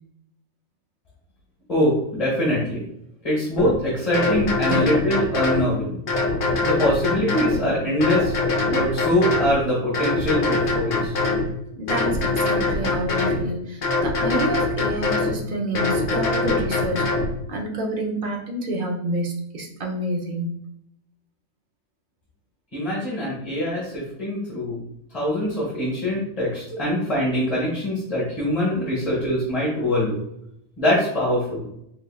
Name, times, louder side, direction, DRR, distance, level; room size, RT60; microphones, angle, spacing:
voice 1, 1.7-2.8 3.2-6.0 6.6-8.3 8.7-11.1 22.7-24.8 25.1-30.1 30.8-31.6, left 1 dB, 25° left, -6 dB, 1.1 m, -23 dB
sound 1, 3.6-3.7 4.1-5.7 6.1-7.6 8.0-9.5 9.9-11.5 11.9-13.4 13.8-15.3 15.7-17.3, left 3 dB, 50° left, 0.9 m, -23 dB
voice 2, 4.7-5.0 11.7-17.1 17.5-20.6 28.9-29.0, right 1 dB, 45° right, 0 dB, 0.7 m, -28 dB
3.7 x 3.4 x 2.3 m, 0.76 s
omnidirectional pair, 1.5 m